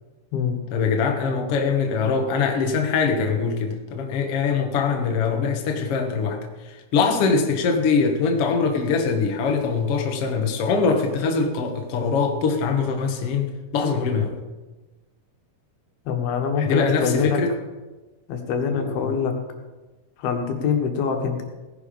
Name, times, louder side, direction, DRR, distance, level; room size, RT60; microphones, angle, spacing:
voice 1, 0.7-14.4 16.6-17.6 18.7-19.2, left 5 dB, 50° left, 3 dB, 1.9 m, -23 dB
voice 2, 16.1-17.4 18.3-19.4 20.2-21.4, left 6 dB, 75° left, 4 dB, 3.4 m, -24 dB
17.5 x 10.5 x 5.3 m, 1.2 s
omnidirectional pair, 4.4 m